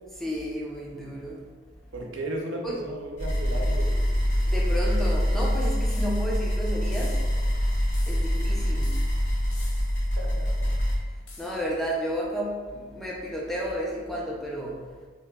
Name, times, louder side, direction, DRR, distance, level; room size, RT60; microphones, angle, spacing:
voice 1, 0.2-1.5 2.6-2.8 4.4-7.2 8.1-8.9 11.4-14.8, equal, ahead, -3 dB, 0.4 m, -32 dB
voice 2, 1.9-4.1 10.2-10.7, right 1 dB, 75° right, -1 dB, 0.5 m, -35 dB
sound 1, 3.2-11.0, equal, 80° left, 0.9 m, -25 dB
sound 2, 5.9-6.5 6.9-7.6 7.9-8.5 8.8-10.2 11.3-11.8, left 3 dB, 60° left, 0.5 m, -49 dB
3.9 x 2.0 x 2.2 m, 1.4 s
head